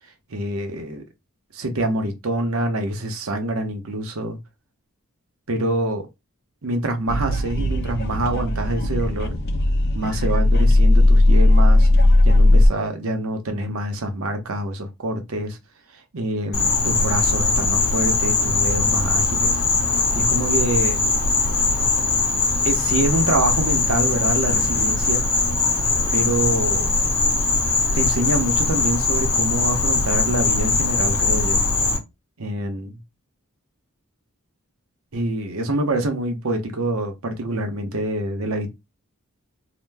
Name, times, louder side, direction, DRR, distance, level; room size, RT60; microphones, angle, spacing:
voice 1, 0.3-1.0 1.5-4.4 5.5-6.1 6.6-9.4 9.9-11.9 12.2-15.6 15.9-19.6 20.1-21.0 22.6-25.2 26.1-26.9 27.9-31.6 32.4-32.9 35.1-38.7, right 1 dB, 65° right, 0.8 m, -25 dB
sound 1, 7.1-12.7, left 1 dB, 50° left, 0.5 m, -16 dB
Insect, 16.5-32.0, left 3 dB, 65° left, 1.0 m, -21 dB
2.9 x 2.1 x 3.4 m
head